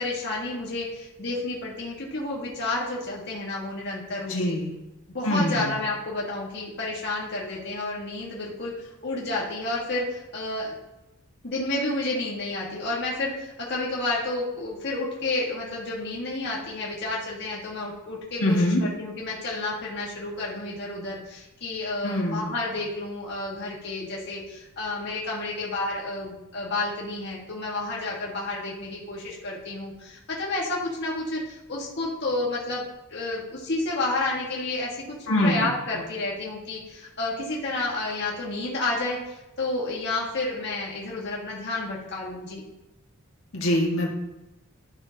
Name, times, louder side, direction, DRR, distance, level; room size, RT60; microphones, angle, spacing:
voice 1, 0.0-4.6 5.1-10.8 11.4-42.6, left 2 dB, 55° left, -4 dB, 1.6 m, -30 dB
voice 2, 4.3-4.8 5.2-5.7 18.4-18.8 22.0-22.5 35.3-35.7 43.5-44.1, left 1 dB, 75° left, -2 dB, 1.8 m, -24 dB
12.5 x 5.8 x 2.8 m, 0.99 s
head